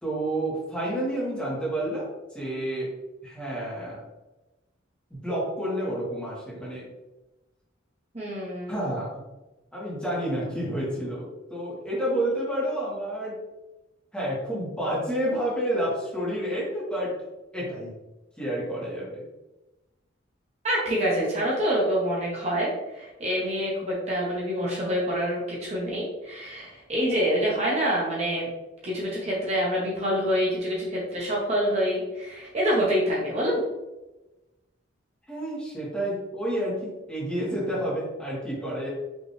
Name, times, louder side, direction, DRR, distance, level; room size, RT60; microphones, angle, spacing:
voice 1, 0.0-2.9 3.2-4.0 5.1-6.8 8.7-9.2 9.7-13.4 14.1-17.2 17.5-17.9 18.4-19.2 35.3-38.9, right 1 dB, 5° left, -7 dB, 1.6 m, -29 dB
voice 2, 8.1-8.9 20.6-28.5 28.8-33.6, equal, 35° right, -5 dB, 0.9 m, -26 dB
5.4 x 3.0 x 3.2 m, 1.0 s
head